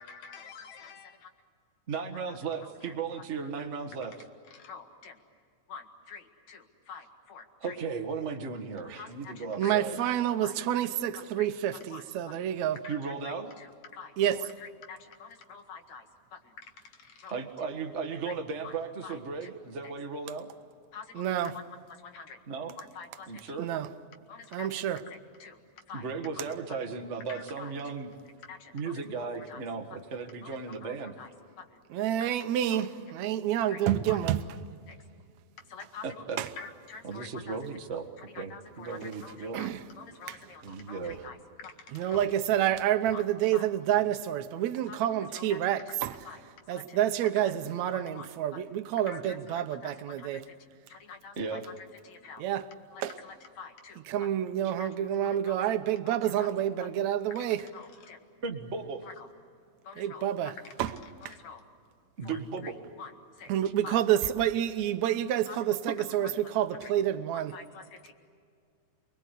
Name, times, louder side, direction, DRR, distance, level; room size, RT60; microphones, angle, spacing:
voice 1, 0.0-1.3 2.3-2.9 4.5-5.2 5.7-7.8 9.0-10.1 10.4-10.6 11.4-11.5 11.9-12.5 12.8-17.4 18.2-18.3 18.6-18.7 19.0-19.5 19.8-19.9 20.9-21.6 21.9-22.4 22.8-23.6 24.3-25.6 25.9-26.1 26.3-26.5 27.3-27.7 28.4-29.6 30.4-31.3 31.6-31.8 32.3-32.4 32.7-32.9 33.7-34.2 34.9-35.0 35.7-36.3 36.6-37.6 38.2-42.3 43.1-43.2 43.5-43.6 44.9-45.0 45.3-46.0 46.2-46.4 46.7-47.5 47.9-48.3 48.5-48.7 49.1-50.6 50.9-52.4 52.9-54.3 54.8-54.9 55.4-55.6 56.0-56.5 56.9-57.0 57.3-57.5 57.7-58.2 59.0-59.3 59.8-60.8 61.2-61.6 62.2-63.5 63.8-64.0 65.5-65.6 66.2-66.3 66.8-66.9 67.3-68.1, left 5 dB, 65° left, 3.1 m, -47 dB
voice 2, 1.9-4.1 7.6-10.1 12.9-13.5 17.3-20.5 22.5-22.8 23.3-23.7 25.9-28.1 28.7-31.1 36.0-36.4 37.0-38.1 38.3-38.5 38.8-39.6 40.6-41.2 51.4-51.6 54.6-54.7 58.4-59.1 62.2-62.7, right 5 dB, 30° right, 1.4 m, -36 dB
voice 3, 9.6-12.8 14.2-14.4 21.2-21.5 23.6-23.9 24.5-25.0 31.9-34.4 36.4-36.5 39.5-39.8 40.3-40.4 41.9-46.2 46.7-50.4 52.4-52.7 53.0-53.1 54.1-57.6 60.0-60.5 60.8-60.9 63.5-67.6, right 11 dB, 70° right, 2.2 m, -28 dB
28.5 x 21.0 x 8.3 m
omnidirectional pair, 3.5 m